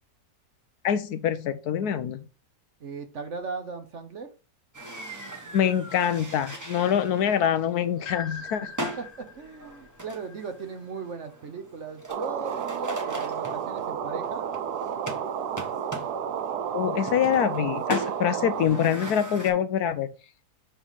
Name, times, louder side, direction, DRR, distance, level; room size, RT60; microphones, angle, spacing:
voice 1, 0.8-2.2 5.5-8.7 16.7-20.1, left 9 dB, 70° left, 1.1 m, -25 dB
voice 2, 2.8-4.3 9.0-14.5, right 4 dB, 50° right, 1.1 m, -37 dB
sound 1, 4.7-19.5, right 1 dB, 15° right, 1.0 m, -39 dB
sound 2, 8.1-11.0, left 5 dB, 55° left, 1.6 m, -42 dB
sound 3, 12.1-18.7, right 8 dB, 75° right, 1.3 m, -31 dB
7.2 x 3.3 x 5.6 m
omnidirectional pair, 1.8 m